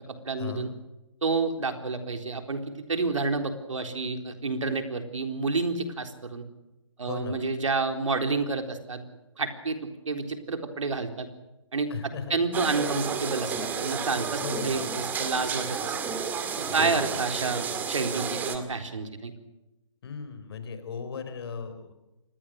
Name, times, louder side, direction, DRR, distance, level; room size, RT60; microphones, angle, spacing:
voice 1, 0.2-0.7 1.2-2.6 2.9-6.4 7.0-9.0 9.4-11.3 11.7-11.9 12.3-15.9 16.6-19.3, right 3 dB, 75° right, 6 dB, 4.0 m, -29 dB
voice 2, 7.0-7.4 11.9-12.4 14.4-14.8 16.7-17.2 20.0-21.9, left 6 dB, 50° left, 10 dB, 4.5 m, -37 dB
sound 1, 12.5-18.6, right 6 dB, 10° right, 2.0 m, -31 dB
27.5 x 20.5 x 6.5 m, 0.99 s
hypercardioid pair, 150°, 16 cm